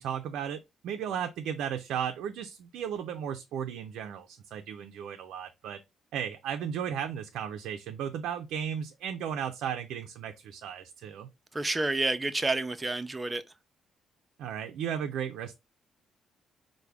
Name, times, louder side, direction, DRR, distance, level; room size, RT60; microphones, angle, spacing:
voice 1, 0.0-5.8 6.1-11.3 14.4-15.5, right 8 dB, 85° right, 0.3 m, -35 dB
voice 2, 11.5-13.4, right 2 dB, 20° right, 0.4 m, -29 dB
4.6 x 2.1 x 3.3 m
cardioid pair, 90°, 0 cm